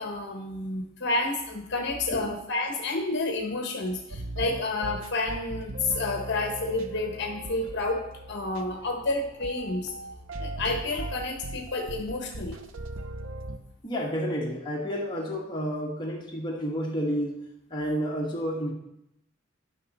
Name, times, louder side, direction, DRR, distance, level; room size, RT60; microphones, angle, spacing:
voice 1, 0.0-9.9 10.4-12.6, left 2 dB, 60° left, 2 dB, 1.0 m, -30 dB
sound 1, 4.1-13.6, right 2 dB, 75° right, 0.7 m, -39 dB
voice 2, 13.8-17.4 17.7-18.7, equal, 25° left, -3 dB, 1.6 m, -30 dB
11.0 x 6.0 x 4.2 m, 0.83 s
head